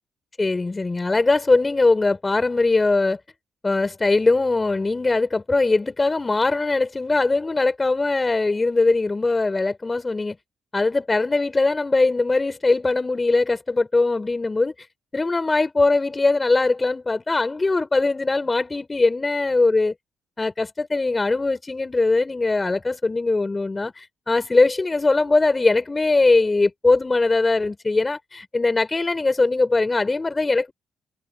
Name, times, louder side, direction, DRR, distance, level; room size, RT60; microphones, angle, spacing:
voice 1, 0.4-3.2 3.6-10.3 10.7-14.9 15.1-19.9 20.4-30.7, left 3 dB, 25° left, 3.9 m, -21 dB
supercardioid pair, 55°, 0 cm